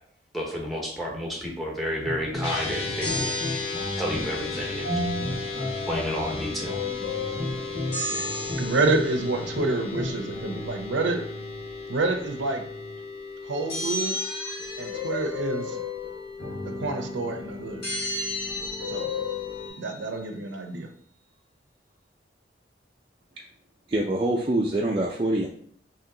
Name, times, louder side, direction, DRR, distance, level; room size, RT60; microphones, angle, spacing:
voice 1, 0.3-3.3 4.0-4.9 5.9-6.8, equal, ahead, -1 dB, 0.8 m, -31 dB
sound 1, 2.0-13.0 14.6-19.7, left 2 dB, 80° left, 1.4 m, -34 dB
sound 2, 2.4-19.7, left 4 dB, 30° left, 0.7 m, -37 dB
sound 3, 3.0-4.7 7.9-9.4 13.7-15.6 17.8-20.0, left 1 dB, 60° left, 1.9 m, -34 dB
voice 2, 8.6-11.2 11.9-12.6 13.4-14.3 14.8-15.8 16.8-17.8 18.9-19.1 19.8-20.9, right 3 dB, 85° right, 6 dB, 0.7 m, -28 dB
voice 3, 23.9-25.5, right 1 dB, 30° right, -2 dB, 0.4 m, -25 dB
4.5 x 3.1 x 3.8 m, 0.63 s
head